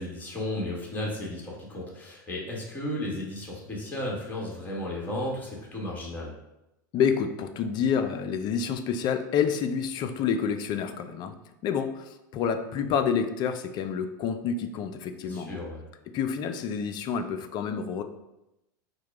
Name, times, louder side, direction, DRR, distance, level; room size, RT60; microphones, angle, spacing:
voice 1, 0.0-6.3 15.2-15.9, left 1 dB, 15° left, -3 dB, 1.5 m, -34 dB
voice 2, 6.9-11.3 11.6-15.6 16.1-18.0, left 7 dB, 40° left, 9 dB, 0.4 m, -28 dB
4.6 x 2.2 x 4.7 m, 0.90 s
hypercardioid pair, 100°, 11 cm